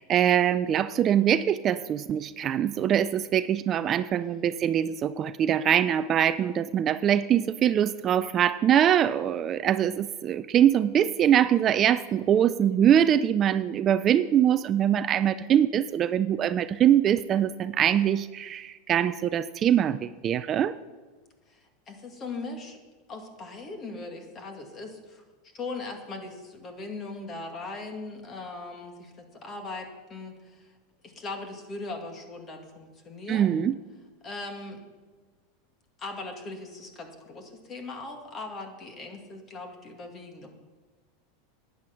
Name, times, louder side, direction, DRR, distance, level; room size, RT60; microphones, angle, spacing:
voice 1, 0.0-20.7 33.3-33.7, right 10 dB, 30° right, 13 dB, 0.4 m, -23 dB
voice 2, 21.5-22.8 23.1-25.2 25.5-30.8 31.0-33.6 34.2-34.8 36.0-40.5, left 3 dB, 30° left, 4 dB, 2.1 m, -39 dB
11.5 x 9.3 x 5.8 m, 1.3 s
supercardioid pair, 135°, 0 cm